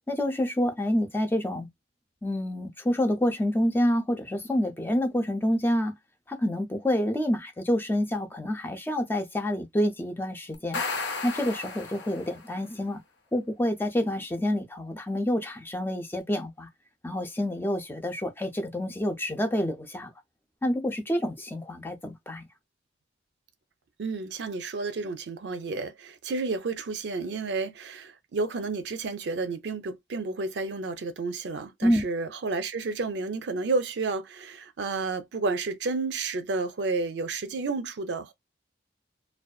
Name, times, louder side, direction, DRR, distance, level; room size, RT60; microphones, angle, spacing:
voice 1, 0.1-1.7 2.2-5.9 6.3-10.8 11.2-13.0 13.3-16.7 17.0-20.1 20.6-22.4 31.8-32.0, left 1 dB, 10° left, 0.4 m, -28 dB
sound 1, 10.5-12.5, left 4 dB, 70° left, 0.6 m, -34 dB
voice 2, 24.0-38.3, right 3 dB, 70° right, 0.5 m, -31 dB
2.5 x 2.2 x 2.3 m
head